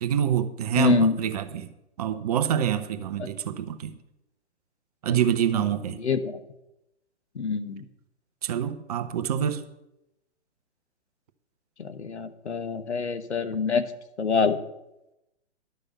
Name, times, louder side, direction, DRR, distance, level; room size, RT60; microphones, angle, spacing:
voice 1, 0.0-1.7 2.0-4.0 5.0-6.0 8.4-9.6, right 9 dB, 35° right, 0.7 m, -26 dB
voice 2, 0.8-1.2 3.2-3.3 5.1-5.2 5.5-5.6 6.0-6.4 7.3-7.8 11.8-13.8 14.2-14.6, left 4 dB, 70° left, 1.2 m, -25 dB
11.5 x 6.7 x 7.1 m
figure-of-eight pair, 125°, 35 cm